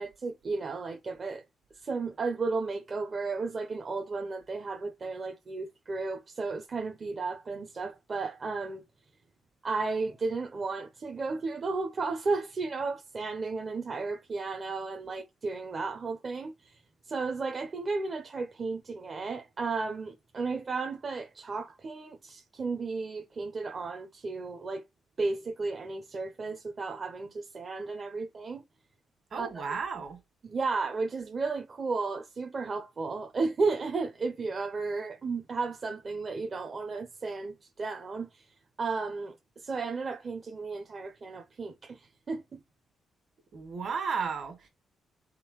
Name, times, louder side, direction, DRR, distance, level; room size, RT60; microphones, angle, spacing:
voice 1, 0.0-1.4 1.7-8.8 9.6-24.8 25.2-28.6 29.4-29.7 30.4-42.6, right 4 dB, 40° right, 0.7 m, -34 dB
voice 2, 29.3-30.2 43.5-44.7, right 5 dB, 55° right, 1.8 m, -34 dB
4.1 x 3.8 x 3.1 m
cardioid pair, 105°, 0 cm